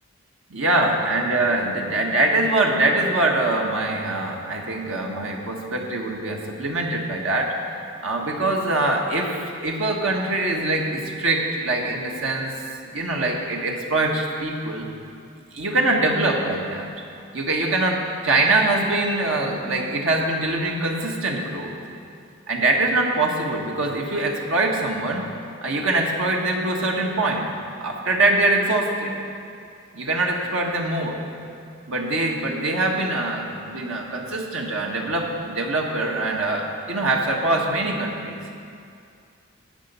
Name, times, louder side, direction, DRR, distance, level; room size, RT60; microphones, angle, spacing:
voice 1, 0.5-7.5 8.0-12.5 12.8-14.9 15.5-16.9 17.3-21.7 22.5-25.3 25.6-27.5 27.8-29.2 29.9-31.2 31.9-38.4, right 2 dB, 75° right, 0 dB, 1.4 m, -23 dB
10.0 x 8.3 x 6.8 m, 2.4 s
head